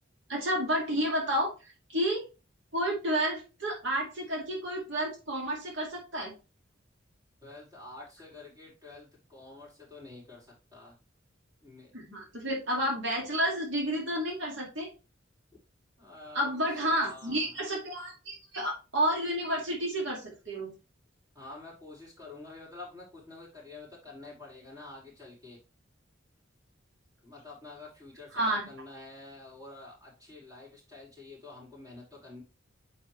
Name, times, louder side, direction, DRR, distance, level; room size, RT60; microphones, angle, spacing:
voice 1, 0.3-1.5 1.9-2.3 2.7-6.3 11.9-14.9 16.3-20.7 28.3-28.6, right 1 dB, 75° right, -1 dB, 2.3 m, -30 dB
voice 2, 7.4-11.0 11.6-11.9 16.0-16.5 16.8-17.6 21.3-25.6 27.2-32.4, left 3 dB, 20° right, -4 dB, 4.8 m, -48 dB
9.4 x 4.5 x 3.2 m, 0.29 s
head